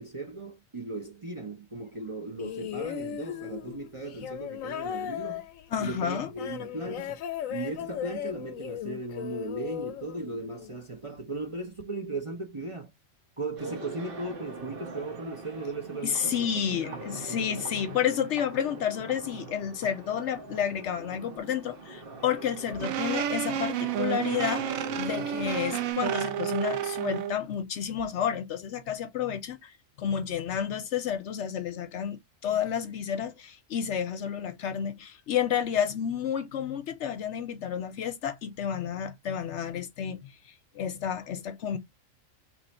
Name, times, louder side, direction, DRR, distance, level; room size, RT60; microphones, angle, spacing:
voice 1, 0.0-5.4 5.8-7.2 7.5-12.9 13.4-17.0 17.3-17.6, right 2 dB, 35° right, 0.6 m, -37 dB
sound 1, 2.4-10.8 11.8-11.9, left 10 dB, 85° left, 1.0 m, -37 dB
voice 2, 5.7-6.3 16.0-29.7 30.0-40.3 40.7-41.8, left 8 dB, 65° left, 0.8 m, -30 dB
sound 2, 13.6-25.9, right 3 dB, 50° right, 1.0 m, -42 dB
sound 3, 22.8-27.4, right 10 dB, 90° right, 1.0 m, -30 dB
3.0 x 2.5 x 4.2 m
omnidirectional pair, 1.4 m